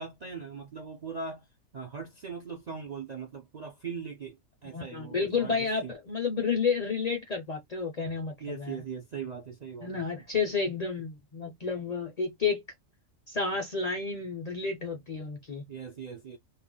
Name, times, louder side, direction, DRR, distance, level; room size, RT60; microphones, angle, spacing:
voice 1, 0.0-1.5 1.7-5.9 8.4-10.0 15.7-16.4, right 5 dB, 50° right, 0.5 m, -40 dB
voice 2, 4.7-8.8 9.8-12.6 13.3-15.6, left 5 dB, 45° left, 0.5 m, -31 dB
2.4 x 2.1 x 3.6 m
omnidirectional pair, 1.3 m